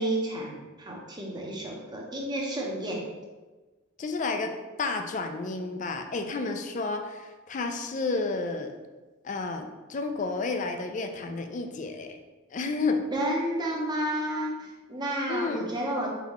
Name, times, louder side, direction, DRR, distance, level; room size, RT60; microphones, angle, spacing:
voice 1, 0.0-3.0 13.1-16.1, right 1 dB, 20° right, -2 dB, 0.8 m, -31 dB
voice 2, 4.0-4.5 4.8-8.7 9.2-12.2 12.5-13.1 15.3-15.7, left 3 dB, 35° left, 5 dB, 0.4 m, -31 dB
4.4 x 4.0 x 3.0 m, 1.2 s
head